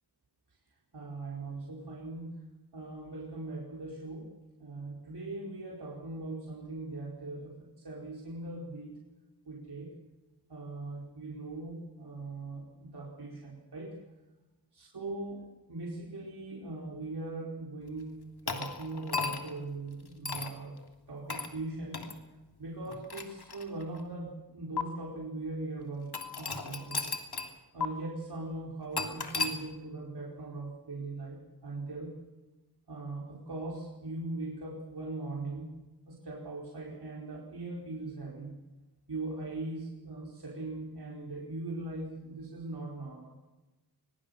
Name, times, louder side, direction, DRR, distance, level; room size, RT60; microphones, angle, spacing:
voice 1, 0.9-2.3 2.7-4.3 4.6-8.9 9.4-9.9 10.5-14.0 14.7-20.8 21.1-22.0 22.6-26.1 26.4-27.1 27.7-32.2 32.9-35.7 36.1-38.5 39.1-43.3, right 2 dB, 80° right, -3 dB, 4.6 m, -40 dB
sound 1, 18.5-19.6 20.2-20.6 21.3-21.5 21.9-22.1 22.9-24.0 24.8-24.9 26.1-27.5 27.8-27.9 29.0-29.6, left 4 dB, 80° left, 3.1 m, -35 dB
23.0 x 22.0 x 6.7 m, 1.1 s
cardioid pair, 50°, 38 cm